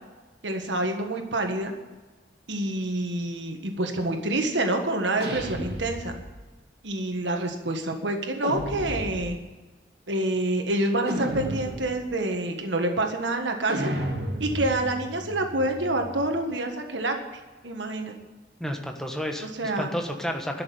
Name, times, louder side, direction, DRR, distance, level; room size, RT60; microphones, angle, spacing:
voice 1, 0.4-1.7 2.5-6.1 6.8-9.4 10.1-13.9 14.4-17.1 17.6-18.1 19.4-20.0, right 1 dB, 80° right, 4 dB, 1.6 m, -27 dB
sound 1, 5.2-6.5 8.4-9.5 11.1-12.1 13.7-16.4, equal, 60° right, 1.9 m, -33 dB
voice 2, 18.6-20.6, equal, 5° left, 3 dB, 1.3 m, -31 dB
12.5 x 6.5 x 9.4 m, 1.3 s
head